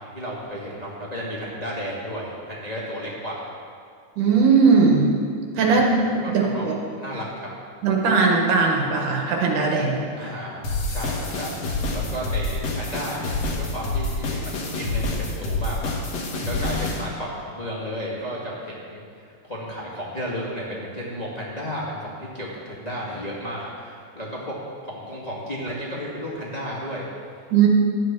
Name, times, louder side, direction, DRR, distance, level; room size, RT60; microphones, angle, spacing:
voice 1, 0.0-3.5 5.6-5.9 6.2-7.5 10.2-10.6 10.9-11.6 11.9-24.5 24.8-27.1, equal, 15° left, -6 dB, 1.8 m, -33 dB
voice 2, 4.2-5.1 5.5-5.9 6.1-6.7 7.8-10.0 27.5-27.7, right 5 dB, 85° right, 0 dB, 3.2 m, -19 dB
sound 1, 10.6-17.0, left 2 dB, 60° left, 2.4 m, -27 dB
13.5 x 9.1 x 6.1 m, 2.3 s
omnidirectional pair, 3.5 m